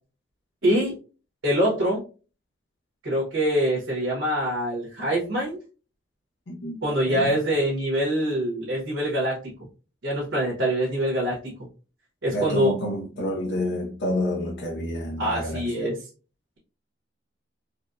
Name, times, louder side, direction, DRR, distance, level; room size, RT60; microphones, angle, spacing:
voice 1, 0.6-1.0 1.4-2.0 3.0-5.6 6.8-9.5 10.0-11.5 12.2-12.7 15.2-16.0, right 1 dB, 85° right, 1.3 m, -24 dB
voice 2, 6.5-7.4 12.3-15.9, left 1 dB, 60° left, 0.7 m, -29 dB
4.1 x 2.2 x 2.6 m
head